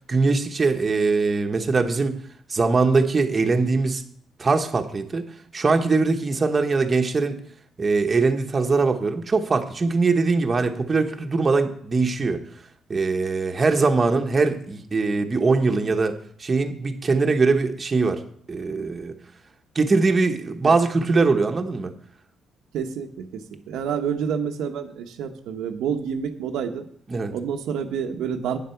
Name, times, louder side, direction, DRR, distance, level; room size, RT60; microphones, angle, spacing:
voice 1, 0.1-2.2 2.5-4.0 4.4-5.2 5.5-7.4 7.8-12.4 12.9-16.1 16.4-18.2 18.5-19.1 19.7-21.9 27.1-27.3, right 4 dB, 30° right, 4 dB, 1.2 m, -21 dB
voice 2, 22.7-26.9 27.3-28.6, right 7 dB, 85° right, 4 dB, 1.0 m, -28 dB
9.3 x 7.6 x 5.8 m, 0.62 s
cardioid pair, 90°, 0 cm